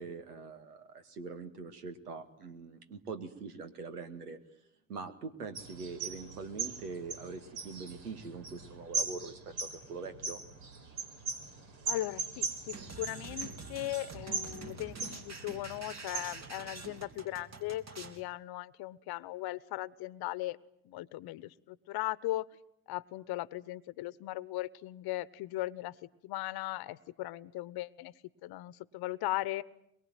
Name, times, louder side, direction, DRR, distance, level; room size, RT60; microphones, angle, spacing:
voice 1, 0.0-4.4 4.9-10.4, right 4 dB, 90° right, 9 dB, 2.1 m, -43 dB
sound 1, 5.5-17.0, right 5 dB, 65° right, 4.9 m, -40 dB
voice 2, 11.9-20.6 20.8-22.5 22.9-25.9 26.2-28.1 28.4-29.6, left 17 dB, 55° left, 19 dB, 1.1 m, -38 dB
sound 2, 12.7-18.2, right 4 dB, 35° right, 3.1 m, -47 dB
23.0 x 23.0 x 9.3 m, 0.76 s
hypercardioid pair, 70°, 45 cm